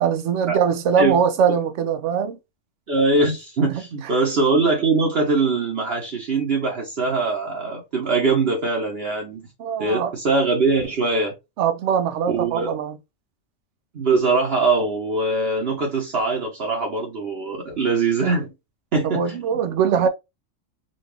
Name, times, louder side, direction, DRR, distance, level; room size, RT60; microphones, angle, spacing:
voice 1, 0.0-2.4 3.7-3.8 9.6-10.1 11.6-13.0 19.0-20.1, right 7 dB, 75° right, 0.9 m, -21 dB
voice 2, 2.9-9.5 9.8-11.3 12.3-12.8 13.9-18.5 18.9-19.6, right 3 dB, 55° right, 1.1 m, -22 dB
3.9 x 2.5 x 3.3 m
omnidirectional pair, 1.3 m